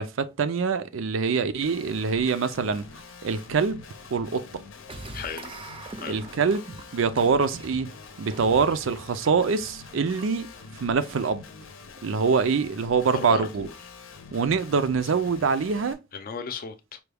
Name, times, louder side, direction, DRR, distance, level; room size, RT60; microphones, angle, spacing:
voice 1, 0.0-2.8 3.2-3.8 4.1-4.4 6.1-6.6 6.9-7.9 8.2-10.5 10.8-11.4 12.0-13.7 14.3-16.0, right 5 dB, 80° right, 0.5 m, -24 dB
Guitar, 1.6-15.9, left 5 dB, 90° left, 0.7 m, -46 dB
sound 1, 4.9-10.7, right 2 dB, 25° right, 0.5 m, -43 dB
voice 2, 5.1-5.6 6.0-6.2 13.1-13.7 16.1-17.0, left 5 dB, 45° left, 0.5 m, -35 dB
4.5 x 2.3 x 3.3 m
head